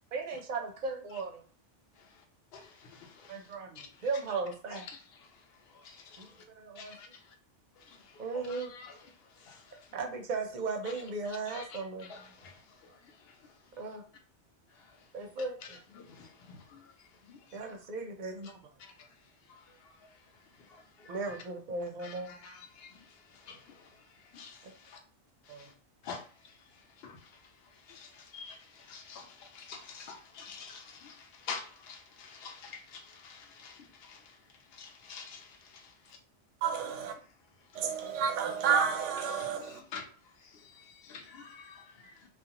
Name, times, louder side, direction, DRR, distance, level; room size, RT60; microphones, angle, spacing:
voice 1, 0.1-1.4 3.3-4.9 6.2-6.3 6.6-7.0 8.2-8.7 9.9-12.1 13.8-14.0 15.1-15.8 17.5-18.5 21.0-22.3 24.6-24.7 25.5-25.6, right 4 dB, 55° right, 0.6 m, -36 dB
voice 2, 2.5-3.5 3.8-4.0 4.7-4.9 5.1-6.4 6.8-7.3 7.8-10.0 11.3-13.5 14.7-15.1 15.9-17.6 18.4-18.5 18.8-18.9 19.5-20.1 20.6-21.4 22.0-25.0 25.4-25.7 26.0-34.4 34.7-35.9 37.7-37.8 39.2-40.1 40.4-42.3, left 5 dB, 65° left, 0.8 m, -49 dB
voice 3, 36.6-37.1 37.8-39.8, right 7 dB, 90° right, 0.9 m, -30 dB
2.4 x 2.3 x 2.8 m
omnidirectional pair, 1.2 m